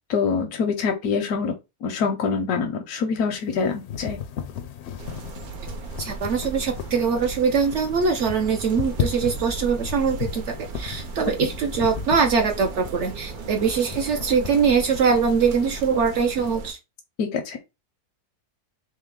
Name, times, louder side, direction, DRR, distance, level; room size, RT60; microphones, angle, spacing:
voice 1, 0.1-1.5 1.8-4.2 17.2-17.7, left 5 dB, 85° left, 1.2 m, -25 dB
sound 1, 3.3-16.6, left 8 dB, 65° left, 0.6 m, -36 dB
sound 2, 5.0-16.7, right 5 dB, 80° right, 1.2 m, -37 dB
voice 2, 6.0-16.8, right 5 dB, 65° right, 0.8 m, -22 dB
3.2 x 3.2 x 3.6 m
omnidirectional pair, 1.6 m